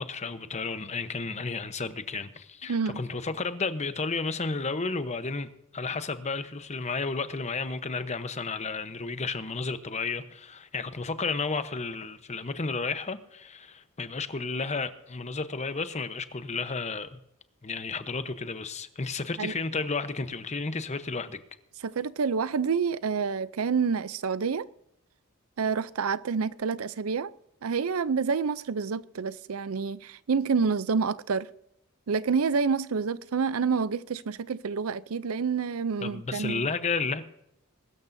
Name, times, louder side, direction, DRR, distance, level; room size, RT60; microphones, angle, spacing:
voice 1, 0.0-17.2 17.6-21.4 36.0-37.2, left 4 dB, 35° left, 0.9 m, -32 dB
voice 2, 2.7-3.0 19.4-19.5 21.8-24.7 25.6-27.3 27.6-31.5 32.1-36.7, right 5 dB, 85° right, 0.5 m, -28 dB
22.0 x 13.0 x 2.7 m
head